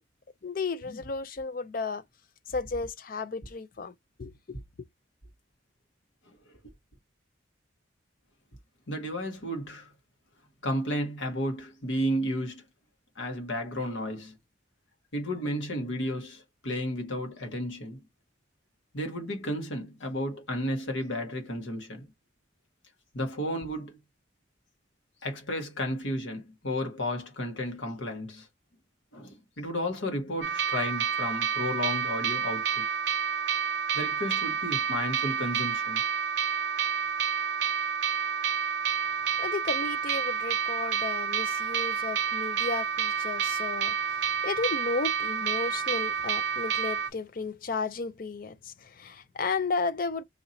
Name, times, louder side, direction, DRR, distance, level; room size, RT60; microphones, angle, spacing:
voice 1, 0.4-2.0 2.5-3.9 4.2-4.9 39.4-50.2, left 4 dB, 45° left, 0.4 m, -33 dB
voice 2, 6.2-6.7 8.9-9.9 10.6-12.6 13.1-14.4 15.1-18.0 18.9-22.1 23.1-24.0 25.2-28.5 29.1-33.0 33.9-36.0, equal, 80° left, 1.4 m, -33 dB
sound 1, 30.4-47.1, right 7 dB, 65° right, 0.4 m, -29 dB
2.9 x 2.8 x 3.9 m
head